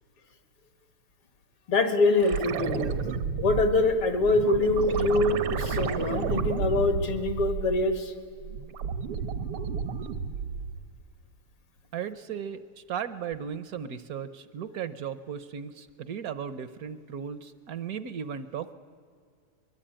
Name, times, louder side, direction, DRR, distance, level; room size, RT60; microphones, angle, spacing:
voice 1, 1.7-2.9 3.4-8.1, left 2 dB, 80° left, 8 dB, 2.9 m, -24 dB
sound 1, 2.2-8.0 8.4-10.9 13.3-13.4, right 6 dB, 90° right, 2.0 m, -32 dB
voice 2, 11.9-18.7, right 8 dB, 65° right, 13 dB, 0.9 m, -36 dB
23.0 x 22.5 x 8.8 m, 2.2 s
omnidirectional pair, 2.4 m